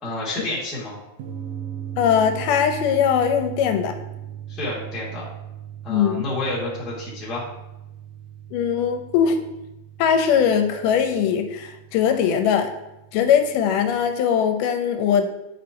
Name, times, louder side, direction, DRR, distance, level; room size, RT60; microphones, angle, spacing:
voice 1, 0.0-1.0 4.5-5.2 5.8-7.5, left 1 dB, ahead, -6 dB, 0.8 m, -29 dB
sound 1, 1.2-14.1, right 10 dB, 85° right, 2.5 m, -38 dB
voice 2, 2.0-4.0 5.9-6.3 8.5-9.4 10.0-12.7 13.1-15.2, left 8 dB, 80° left, 7 dB, 2.1 m, -20 dB
9.6 x 5.2 x 2.9 m, 0.93 s
omnidirectional pair, 3.8 m